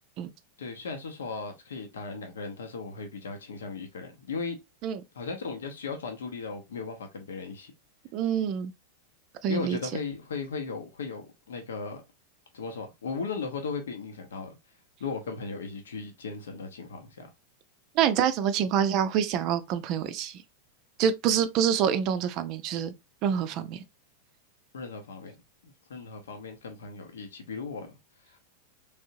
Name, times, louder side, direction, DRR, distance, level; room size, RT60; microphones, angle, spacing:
voice 1, 0.6-4.6 5.1-7.7 9.5-12.0 12.5-14.6 15.0-17.3 24.7-25.3 25.6-27.9 28.3-28.4, left 4 dB, 65° left, 0.8 m, -37 dB
voice 2, 8.1-8.7 9.4-9.8 18.0-20.4 21.0-22.9 23.2-23.8, right 8 dB, 40° right, 0.5 m, -26 dB
3.5 x 3.4 x 2.6 m
figure-of-eight pair, 90°, 0 cm